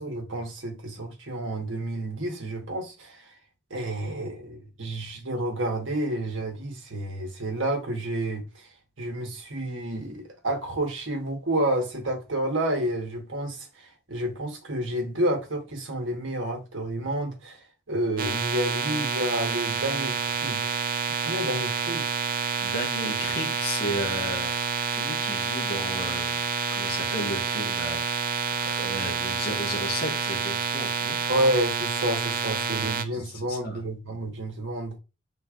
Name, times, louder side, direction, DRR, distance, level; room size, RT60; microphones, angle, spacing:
voice 1, 0.0-3.2 3.7-8.7 9.0-17.6 17.9-20.8 21.2-22.1 31.3-35.0, right 1 dB, 75° right, 1.4 m, -30 dB
sound 1, 18.2-33.0, right 6 dB, 45° right, 0.4 m, -28 dB
voice 2, 22.6-24.5 24.9-26.4 26.7-28.0 28.6-31.2 33.1-33.8, equal, 50° left, 1.6 m, -34 dB
5.3 x 3.9 x 2.5 m
head